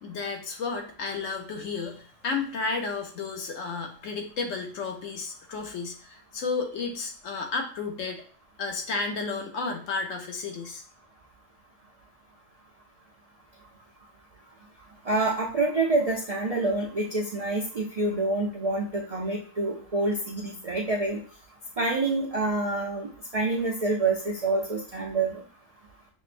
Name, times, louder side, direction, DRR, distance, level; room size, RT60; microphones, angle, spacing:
voice 1, 0.0-8.2 8.6-10.8, left 4 dB, 80° left, 3 dB, 1.1 m, -32 dB
voice 2, 15.1-21.2 21.8-25.4, right 2 dB, 60° right, -2 dB, 0.4 m, -27 dB
6.1 x 2.1 x 2.5 m, 0.43 s
omnidirectional pair, 1.3 m